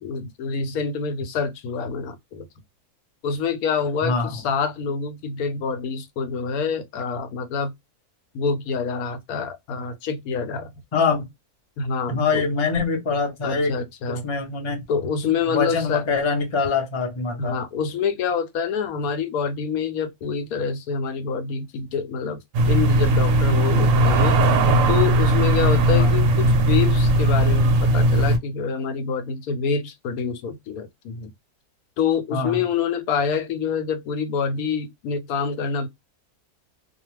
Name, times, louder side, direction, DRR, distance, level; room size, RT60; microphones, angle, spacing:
voice 1, 0.0-2.5 3.2-7.7 8.3-10.7 11.8-12.4 13.4-14.3 14.9-16.0 17.4-22.4 22.7-24.4 24.9-31.3 32.0-35.9, left 6 dB, 75° left, 1.0 m, -26 dB
voice 2, 4.0-4.3 10.9-11.3 12.1-13.7 14.1-14.8 15.5-17.6 25.9-26.1 32.3-32.6, left 4 dB, 35° left, 0.4 m, -24 dB
sound 1, 22.5-28.4, right 1 dB, 70° right, 0.8 m, -18 dB
2.4 x 2.2 x 3.1 m
omnidirectional pair, 1.6 m